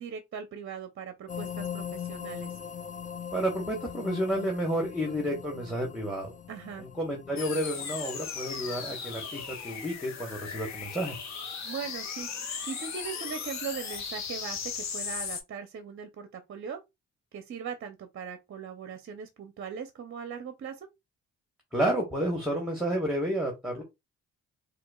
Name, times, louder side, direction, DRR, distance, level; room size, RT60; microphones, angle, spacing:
voice 1, 0.0-2.6 6.5-6.9 11.6-16.8 17.3-20.9, right 7 dB, 45° right, 0.6 m, -40 dB
sound 1, 1.3-9.0, left 8 dB, 25° left, 0.3 m, -41 dB
voice 2, 3.3-6.3 6.8-11.2 21.7-23.8, right 1 dB, 5° right, 1.1 m, -30 dB
sound 2, 7.4-15.4, left 6 dB, 65° left, 0.8 m, -37 dB
4.4 x 2.4 x 2.2 m
cardioid pair, 90°, 30 cm